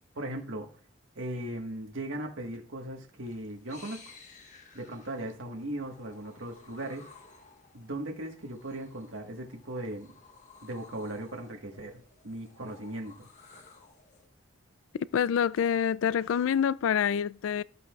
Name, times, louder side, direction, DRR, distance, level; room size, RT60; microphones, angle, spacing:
voice 1, 0.1-0.7 1.2-4.1 4.7-7.1 7.7-10.1 10.6-13.3, right 1 dB, 70° right, 1.4 m, -38 dB
sound 1, 3.2-14.3, left 4 dB, 35° left, 1.2 m, -56 dB
voice 2, 15.1-17.6, left 8 dB, 75° left, 0.3 m, -26 dB
13.0 x 8.2 x 2.4 m
head